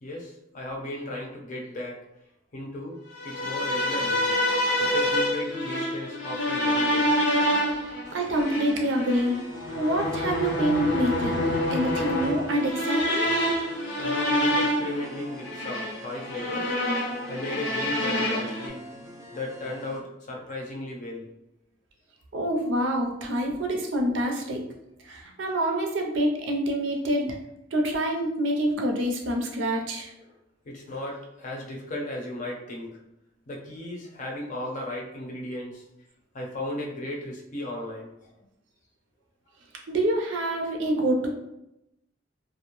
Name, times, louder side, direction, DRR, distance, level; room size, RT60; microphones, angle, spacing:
voice 1, 0.0-2.0 2.5-3.0 3.2-4.3 4.8-7.1 14.0-16.8 17.3-18.8 19.3-21.3 23.5-23.6 30.2-30.3 30.7-33.0 33.5-35.8 36.3-38.1, left 1 dB, 45° left, -1 dB, 0.6 m, -35 dB
sound 1, 3.2-18.7, left 1 dB, 85° left, 0.7 m, -27 dB
sound 2, 8.0-20.0, equal, 15° right, 0.4 m, -45 dB
voice 2, 8.1-9.4 9.8-11.4 11.7-13.3 22.3-24.6 25.1-27.3 27.7-30.1 39.9-41.3, right 1 dB, 80° right, 2 dB, 0.5 m, -26 dB
2.5 x 2.0 x 2.9 m, 0.85 s
head